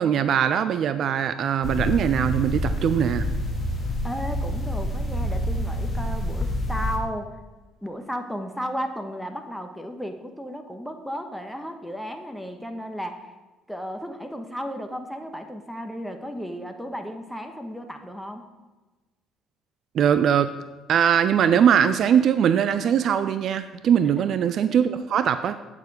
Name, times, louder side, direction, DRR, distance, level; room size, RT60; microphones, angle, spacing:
voice 1, 0.0-3.3 19.9-20.5 20.9-25.6, right 8 dB, 50° right, 11 dB, 0.4 m, -21 dB
sound 1, 1.6-7.0, left 1 dB, 25° left, 2.0 m, -27 dB
voice 2, 4.0-7.4 7.8-13.3 13.7-18.4 24.2-24.3, equal, ahead, 5 dB, 1.2 m, -34 dB
8.6 x 6.7 x 4.9 m, 1.2 s
figure-of-eight pair, 50°, 0 cm